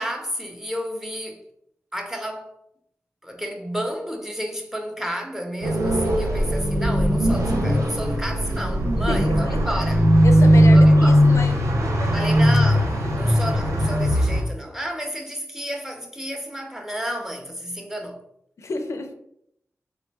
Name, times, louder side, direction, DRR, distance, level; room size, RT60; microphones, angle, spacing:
voice 1, 0.0-1.4 1.9-2.5 3.2-10.0 10.7-11.2 12.1-18.2, equal, 10° right, 0.6 m, -31 dB
sound 1, 5.6-14.4, equal, 75° right, 0.6 m, -18 dB
voice 2, 9.1-9.8 10.2-12.1 13.2-13.4 18.6-19.1, left 3 dB, 65° left, 0.4 m, -31 dB
3.3 x 2.1 x 3.3 m
cardioid pair, 55°, 5 cm